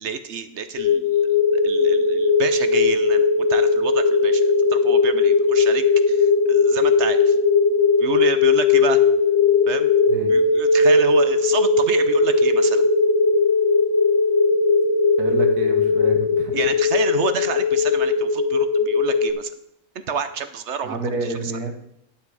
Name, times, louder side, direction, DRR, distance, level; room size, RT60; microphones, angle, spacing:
voice 1, 0.0-1.2 1.5-4.4 4.7-7.4 8.0-9.0 9.7-9.9 10.3-12.9 16.5-19.5 20.1-21.0, right 6 dB, 55° right, 10 dB, 0.9 m, -29 dB
sound 1, 0.8-19.3, left 4 dB, 60° left, 1.2 m, -18 dB
voice 2, 15.2-16.6 20.8-21.7, right 3 dB, 85° right, 5 dB, 1.9 m, -29 dB
11.0 x 7.3 x 4.8 m, 0.76 s
omnidirectional pair, 1.6 m